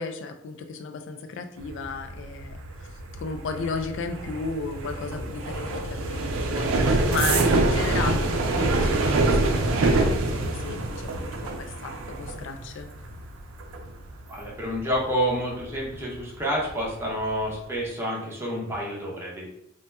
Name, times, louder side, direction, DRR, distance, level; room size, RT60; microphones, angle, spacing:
voice 1, 0.0-2.6 3.1-12.9, left 4 dB, 60° left, 7 dB, 0.3 m, -34 dB
sound 1, 1.6-16.2 16.6-17.0 17.3-17.6, right 2 dB, 80° right, 0.4 m, -26 dB
voice 2, 14.3-19.5, equal, 10° right, -4 dB, 0.7 m, -29 dB
2.8 x 2.1 x 3.3 m, 0.78 s
head